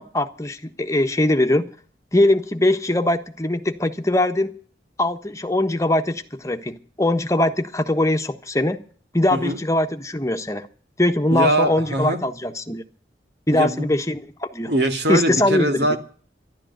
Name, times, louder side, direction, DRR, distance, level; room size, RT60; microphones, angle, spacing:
voice 1, 0.0-1.7 2.1-4.5 5.0-8.8 9.1-10.7 11.0-12.8 13.5-14.7 15.1-16.0, left 1 dB, 15° left, 7 dB, 1.3 m, -21 dB
voice 2, 11.3-12.2 13.5-13.9 14.7-16.0, right 1 dB, 70° right, 6 dB, 2.4 m, -22 dB
13.0 x 12.0 x 8.0 m, 0.44 s
head